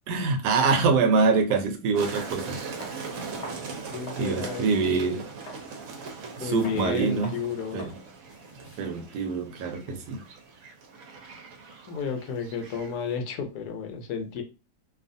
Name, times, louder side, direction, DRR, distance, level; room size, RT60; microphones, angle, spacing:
voice 1, 0.1-2.6 4.2-5.3 6.4-7.4 7.7-8.0 8.8-10.2, right 4 dB, 85° right, 1.2 m, -25 dB
sound 1, 1.5-1.7 2.2-2.4 2.8-4.3 4.7-4.8 5.5-5.7 6.1-6.3 6.6-6.8 7.2-7.4 7.8-8.0 8.3-10.2, left 1 dB, 60° left, 0.4 m, -45 dB
sound 2, 2.0-13.2, right 4 dB, 65° right, 1.0 m, -40 dB
voice 2, 3.9-4.7 6.4-7.9 11.9-14.4, left 6 dB, 75° left, 1.1 m, -32 dB
2.7 x 2.4 x 2.5 m
omnidirectional pair, 1.7 m